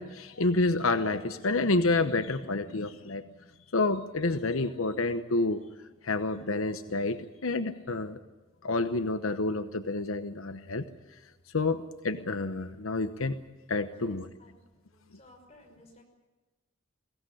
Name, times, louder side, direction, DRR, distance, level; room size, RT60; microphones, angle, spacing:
voice 1, 0.0-3.2 3.7-5.6 6.0-8.2 8.6-10.8 11.5-13.4 13.7-14.3, left 2 dB, 90° left, 10 dB, 1.0 m, -29 dB
voice 2, 13.9-14.5 14.8-16.0, left 1 dB, 30° left, 1 dB, 5.9 m, -56 dB
23.0 x 17.0 x 9.9 m, 1.2 s
head